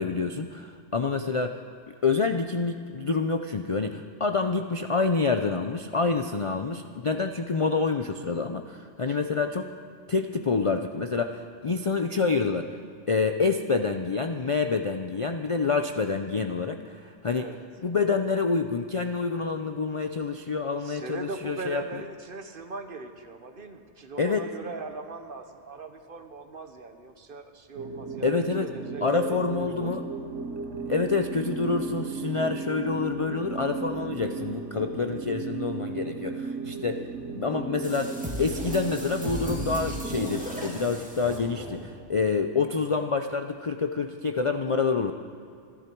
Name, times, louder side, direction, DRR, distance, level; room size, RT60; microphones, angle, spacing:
voice 1, 0.0-1.6 2.0-9.7 10.1-12.8 13.1-17.5 17.8-21.8 24.2-24.5 28.2-28.7 29.0-30.0 30.9-37.1 37.3-45.1, left 4 dB, 45° left, 6 dB, 0.4 m, -27 dB
voice 2, 20.8-29.9, right 3 dB, 50° right, 7 dB, 1.2 m, -40 dB
sound 1, 27.8-40.7, right 4 dB, 80° right, 1.4 m, -35 dB
sound 2, 37.8-42.0, equal, 5° right, 2.2 m, -36 dB
26.5 x 11.0 x 4.6 m, 2.4 s
omnidirectional pair, 1.2 m